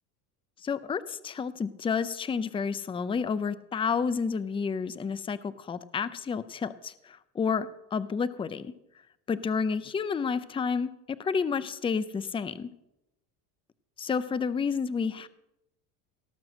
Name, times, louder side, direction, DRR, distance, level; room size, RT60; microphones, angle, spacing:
voice 1, 0.6-8.7 9.3-12.7 14.0-15.3, left 5 dB, 15° left, 15 dB, 0.5 m, -30 dB
17.5 x 6.1 x 6.2 m, 0.89 s
supercardioid pair, 110°, 41 cm